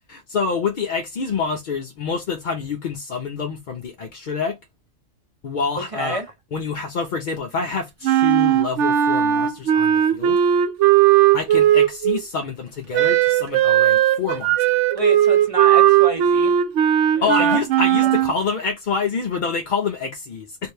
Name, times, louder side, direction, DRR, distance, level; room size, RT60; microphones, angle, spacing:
voice 1, 0.1-4.6 5.4-6.2 6.5-10.4 11.3-14.6 17.2-20.7, left 5 dB, 55° left, 0.6 m, -27 dB
voice 2, 5.9-6.3 14.9-16.5 17.1-17.6, right 1 dB, 35° right, 0.6 m, -28 dB
Wind instrument woodwind instrument, 8.0-12.2 12.9-18.3, right 11 dB, 85° right, 0.9 m, -17 dB
2.8 x 2.5 x 3.2 m
omnidirectional pair, 1.2 m